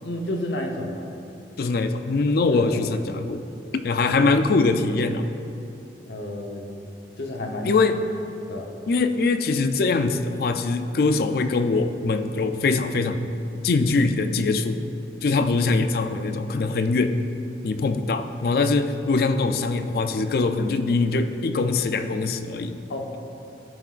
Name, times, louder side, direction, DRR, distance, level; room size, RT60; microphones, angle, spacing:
voice 1, 0.0-1.1 2.5-2.8 6.1-6.7 7.2-7.7 8.5-8.7 22.9-23.2, left 1 dB, 80° left, 2 dB, 0.9 m, -31 dB
voice 2, 1.6-3.4 3.7-5.3 7.6-8.1 8.9-13.3 13.6-14.8 15.2-17.2 17.6-22.8, left 3 dB, 55° left, 9 dB, 0.4 m, -22 dB
14.0 x 6.1 x 2.5 m, 2.8 s
head